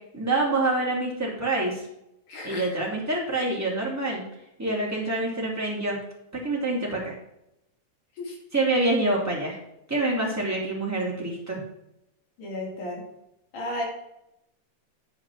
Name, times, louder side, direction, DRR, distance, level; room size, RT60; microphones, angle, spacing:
voice 1, 0.1-1.8 2.4-4.2 4.6-6.0 6.3-7.1 8.5-9.6 9.9-11.6, right 2 dB, 5° right, -4 dB, 2.3 m, -26 dB
voice 2, 2.3-2.7 8.2-8.4 12.4-13.0 13.5-13.8, left 1 dB, 75° left, -3 dB, 4.5 m, -33 dB
9.9 x 4.9 x 6.0 m, 0.84 s
omnidirectional pair, 3.6 m